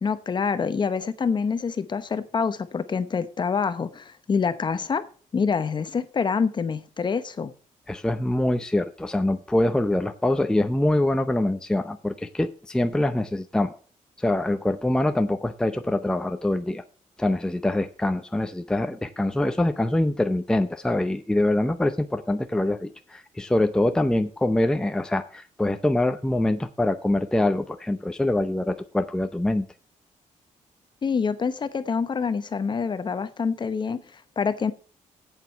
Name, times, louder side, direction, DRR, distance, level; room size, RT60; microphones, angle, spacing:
voice 1, 0.0-5.1 5.3-7.5 31.0-34.7, left 5 dB, 35° left, 12 dB, 0.8 m, -26 dB
voice 2, 7.9-13.8 14.2-16.8 17.2-29.7, left 1 dB, 5° left, 8 dB, 0.6 m, -24 dB
8.3 x 7.4 x 6.7 m, 0.40 s
cardioid pair, 135°, 13 cm